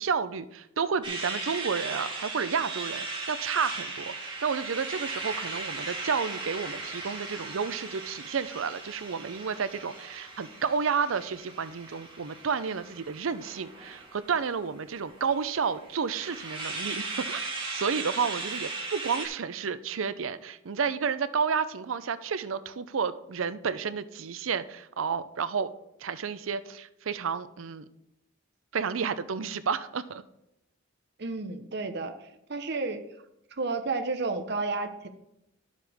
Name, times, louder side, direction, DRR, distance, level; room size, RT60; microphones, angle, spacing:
voice 1, 0.0-25.7 26.0-27.9 28.7-30.2, right 6 dB, 90° right, 14 dB, 0.5 m, -31 dB
sound 1, 1.0-19.3, right 3 dB, 25° right, 2.0 m, -38 dB
voice 2, 31.2-32.1 32.5-33.0 33.6-35.1, right 3 dB, 55° right, 7 dB, 0.9 m, -31 dB
11.5 x 7.4 x 3.5 m, 0.85 s
head